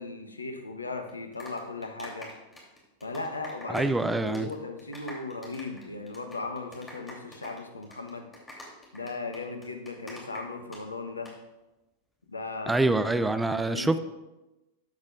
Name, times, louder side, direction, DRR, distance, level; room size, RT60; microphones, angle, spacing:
voice 1, 0.0-2.3 3.0-3.9 4.2-8.3 8.9-11.3 12.3-12.7 13.7-14.0, left 3 dB, 80° left, 6 dB, 0.9 m, -37 dB
sound 1, 1.1-4.0 4.3-4.5 4.8-10.8 11.1-11.3, left 1 dB, 10° left, 3.0 m, -45 dB
voice 2, 3.7-4.5 12.7-14.0, right 2 dB, 5° right, 10 dB, 0.5 m, -25 dB
13.0 x 8.4 x 2.5 m, 1.0 s
figure-of-eight pair, 90°, 0 cm